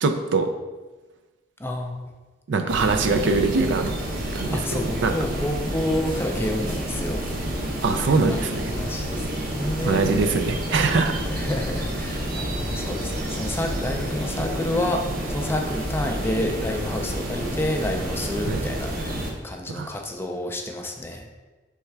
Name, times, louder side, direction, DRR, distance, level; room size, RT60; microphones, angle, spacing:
voice 1, 0.0-0.5 2.5-3.9 4.4-4.6 5.0-5.1 7.8-8.7 9.9-11.2 18.5-18.6 19.7-19.9, right 4 dB, 70° right, 7 dB, 0.4 m, -22 dB
voice 2, 1.6-2.1 4.5-7.3 8.3-10.0 11.3-21.3, left 1 dB, 15° left, 3 dB, 0.4 m, -29 dB
sound 1, 2.7-19.3, right 1 dB, 50° right, 0.7 m, -29 dB
3.5 x 3.2 x 4.5 m, 1.2 s
head